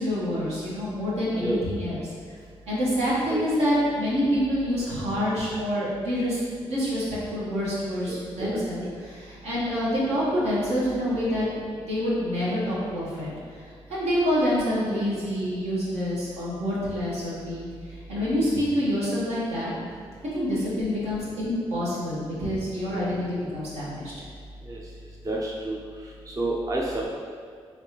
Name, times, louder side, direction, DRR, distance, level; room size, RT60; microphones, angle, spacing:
voice 1, 0.0-2.0 2.7-6.4 6.7-11.5 11.9-13.3 13.9-17.6 18.1-19.7 20.3-24.1, equal, 80° right, -8 dB, 1.2 m, -27 dB
voice 2, 25.3-25.8 26.4-27.1, right 2 dB, 35° right, -4 dB, 0.5 m, -28 dB
3.4 x 3.2 x 2.8 m, 2.1 s
supercardioid pair, 55°, 11 cm